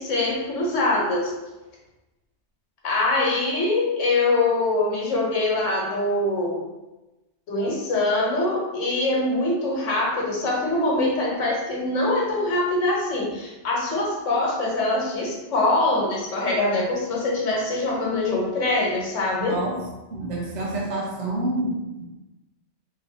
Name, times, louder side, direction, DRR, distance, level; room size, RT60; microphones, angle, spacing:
voice 1, 0.0-1.3 2.8-6.6 7.5-19.6, left 2 dB, 85° left, -3 dB, 1.2 m, -23 dB
voice 2, 19.4-19.8 20.1-22.0, right 2 dB, 75° right, -2 dB, 1.1 m, -28 dB
3.1 x 2.8 x 2.7 m, 1.0 s
omnidirectional pair, 1.2 m